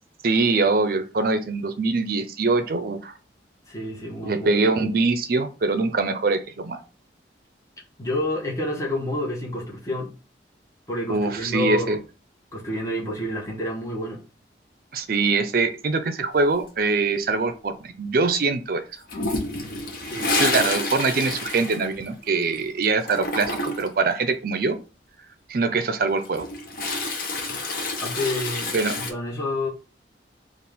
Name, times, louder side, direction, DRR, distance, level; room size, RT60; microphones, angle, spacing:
voice 1, 0.2-3.1 4.2-6.8 11.1-12.0 14.9-18.8 20.4-23.5 23.8-24.8 25.5-26.4 28.7-29.0, right 3 dB, 55° right, 9 dB, 0.5 m, -23 dB
voice 2, 3.7-4.6 8.0-10.1 10.9-12.0 12.5-14.2 20.0-20.5 28.0-29.7, left 1 dB, 20° left, -4 dB, 1.0 m, -29 dB
Toilet flush, 19.1-22.6 22.8-24.0 26.1-29.1, left 2 dB, 55° left, 0.8 m, -28 dB
4.2 x 2.5 x 3.5 m, 0.33 s
head